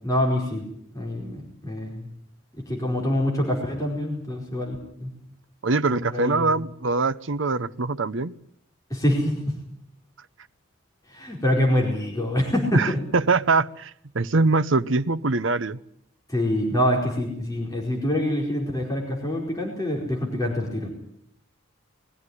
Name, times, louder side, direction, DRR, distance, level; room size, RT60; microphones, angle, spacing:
voice 1, 0.0-0.6 0.9-2.1 2.6-5.1 5.9-6.5 8.9-9.6 11.1-13.0 16.3-20.9, left 1 dB, 15° left, -2 dB, 4.6 m, -25 dB
voice 2, 5.6-8.3 12.7-15.8, right 3 dB, 65° right, 13 dB, 0.8 m, -23 dB
22.0 x 15.0 x 9.8 m, 0.70 s
head